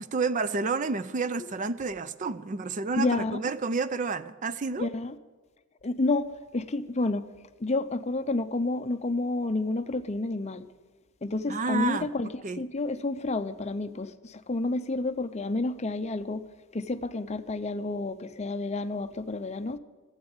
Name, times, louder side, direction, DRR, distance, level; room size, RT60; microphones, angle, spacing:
voice 1, 0.0-4.9 11.5-12.1 12.4-12.6, right 4 dB, 35° right, 0.4 m, -30 dB
voice 2, 2.9-3.4 4.8-5.2 5.8-7.3 7.6-10.7 11.2-12.3 12.5-16.5 16.7-19.8, left 2 dB, 30° left, 0.5 m, -30 dB
13.0 x 8.1 x 9.7 m
head